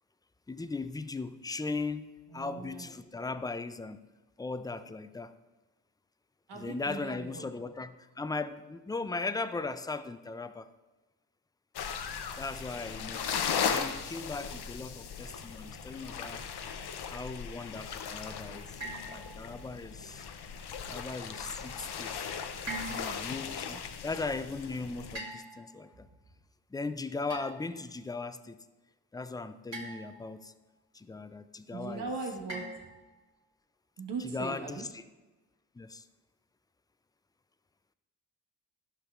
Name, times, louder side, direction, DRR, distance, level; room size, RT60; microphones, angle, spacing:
voice 1, 0.5-4.0 4.4-5.4 6.5-10.7 12.4-13.3 13.7-16.4 17.1-18.8 19.1-20.3 20.9-22.3 22.7-26.1 26.7-28.6 29.1-30.5 30.9-32.1 34.2-35.0 35.7-36.1, left 3 dB, 10° left, 0.3 m, -38 dB
voice 2, 2.3-2.9 6.5-7.5 31.7-32.6 34.0-34.8, right 4 dB, 80° right, 1.4 m, -39 dB
sound 1, 11.8-25.2, left 7 dB, 70° left, 0.7 m, -37 dB
sound 2, 18.8-19.7 22.7-23.4 25.2-25.9 27.3-27.8 29.7-30.4 32.5-33.2, right 1 dB, 40° right, 2.1 m, -42 dB
11.0 x 6.0 x 2.4 m
cardioid pair, 55°, 41 cm